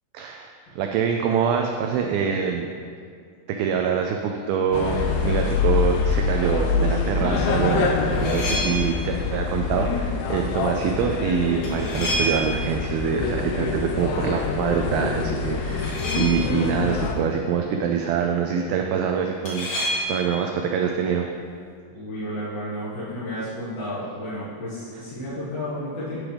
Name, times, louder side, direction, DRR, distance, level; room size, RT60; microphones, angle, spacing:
voice 1, 0.1-2.7 3.5-21.3, right 7 dB, 85° right, 3 dB, 2.1 m, -25 dB
sound 1, 4.7-17.2, left 5 dB, 85° left, 2.8 m, -25 dB
sound 2, 8.0-9.1 11.6-12.8 15.6-16.6 19.5-20.4, equal, 50° left, 2.4 m, -29 dB
voice 2, 21.9-26.2, equal, 65° left, -12 dB, 3.4 m, -32 dB
12.0 x 6.2 x 3.4 m, 2.1 s
omnidirectional pair, 4.8 m